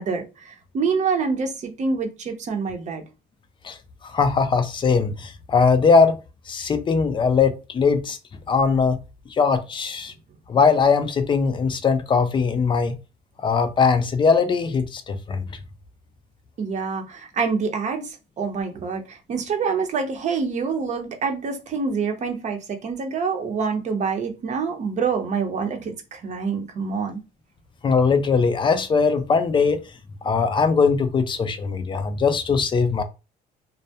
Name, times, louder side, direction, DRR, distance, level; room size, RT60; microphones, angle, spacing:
voice 1, 0.0-3.0 16.6-27.2, right 5 dB, 45° right, 0.6 m, -26 dB
voice 2, 3.6-6.2 6.5-8.2 8.5-9.0 9.3-10.1 10.5-13.0 13.4-15.6 27.8-29.8 30.2-33.0, left 5 dB, 30° left, 0.4 m, -20 dB
2.2 x 2.0 x 2.7 m
cardioid pair, 110°, 17 cm